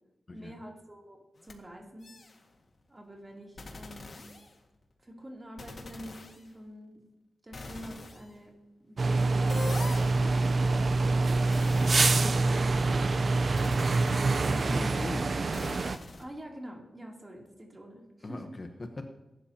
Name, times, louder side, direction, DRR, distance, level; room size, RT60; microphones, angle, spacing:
voice 1, 0.3-2.1 2.9-4.2 5.0-7.0 7.4-8.5 8.8-9.7 16.2-18.6, equal, 20° right, -1 dB, 2.9 m, -46 dB
sound 1, 1.4-1.5 2.0-2.4 3.6-4.8 5.6-6.4 7.5-8.3 9.5-12.9 13.6-16.2, left 3 dB, 50° left, 1.7 m, -44 dB
sound 2, 9.0-16.0, right 3 dB, 50° right, 0.6 m, -26 dB
voice 2, 14.5-15.3 18.2-19.1, left 2 dB, 35° left, 5 dB, 1.0 m, -40 dB
22.5 x 12.0 x 2.8 m, 0.98 s
wide cardioid pair, 150°, 0 cm